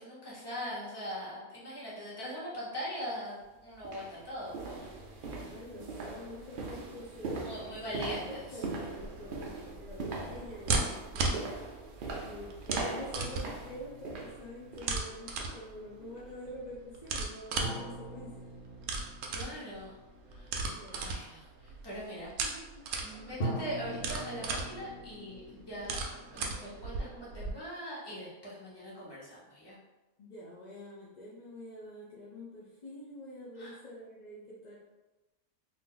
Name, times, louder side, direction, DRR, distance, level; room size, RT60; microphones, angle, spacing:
voice 1, 0.0-4.9 7.3-8.4 19.3-20.0 20.3-20.5 20.9-22.3 23.0-26.0 26.3-29.8 33.6-33.8, equal, 20° left, -8 dB, 0.9 m, -41 dB
sound 1, 3.1-3.2 3.8-15.0 15.4-15.6 16.1-16.2, right 3 dB, 90° right, 0.4 m, -41 dB
voice 2, 5.3-11.5 12.3-18.5 20.8-21.1 22.4-22.8 30.2-34.8, left 1 dB, 65° left, -6 dB, 0.4 m, -47 dB
sound 2, 8.9-27.5, right 3 dB, 70° right, 0.8 m, -38 dB
sound 3, 13.2-15.0 17.6-20.5 23.4-27.2, right 1 dB, 45° left, 1.0 m, -42 dB
2.6 x 2.5 x 3.7 m, 1.1 s
omnidirectional pair, 1.5 m